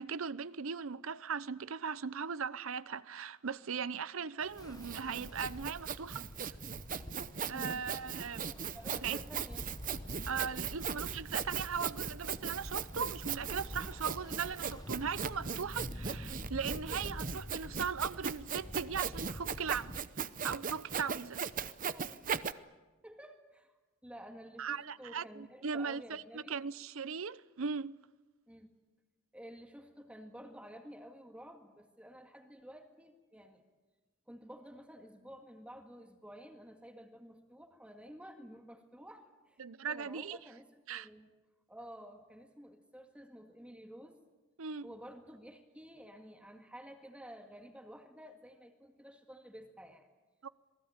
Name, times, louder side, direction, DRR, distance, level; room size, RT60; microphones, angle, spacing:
voice 1, 0.0-6.3 7.5-8.5 9.0-9.2 10.3-21.4 24.6-28.0 39.6-40.4 40.9-41.1 44.6-44.9 50.4-50.5, right 6 dB, 75° right, 0.7 m, -38 dB
Sawing, 4.5-22.5, right 7 dB, 40° right, 0.8 m, -39 dB
Ocean, 4.6-20.0, left 1 dB, 20° left, 0.9 m, -47 dB
voice 2, 7.5-7.8 8.5-9.7 13.4-13.5 15.5-15.7 21.9-22.3 23.0-23.7 24.0-26.6 28.5-28.7 29.3-33.6 34.3-39.6 39.9-41.3 41.7-44.2 44.8-50.1, equal, 5° right, 1.9 m, -52 dB
27.0 x 19.5 x 8.8 m
head